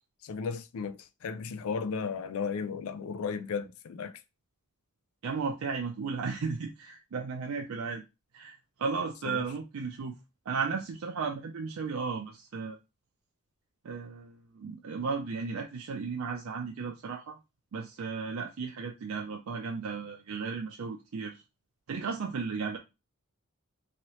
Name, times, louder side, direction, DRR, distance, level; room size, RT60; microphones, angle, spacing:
voice 1, 0.2-4.2 9.2-9.4, left 5 dB, 85° left, 0.4 m, -35 dB
voice 2, 5.2-8.0 8.3-10.2 10.5-12.8 13.8-17.4 17.7-21.4 21.9-22.8, right 5 dB, 80° right, 0.4 m, -35 dB
2.8 x 2.8 x 3.0 m
head